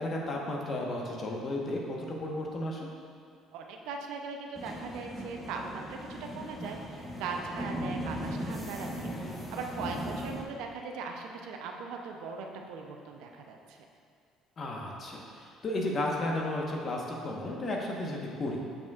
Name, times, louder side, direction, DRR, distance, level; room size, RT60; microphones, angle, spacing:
voice 1, 0.0-2.9 14.6-18.6, left 1 dB, 45° left, -1 dB, 1.1 m, -33 dB
voice 2, 3.5-13.8, right 4 dB, 75° right, 2 dB, 0.6 m, -40 dB
sound 1, 4.6-10.4, equal, 10° left, 1.0 m, -38 dB
7.1 x 6.0 x 2.4 m, 2.2 s
supercardioid pair, 75°, 0 cm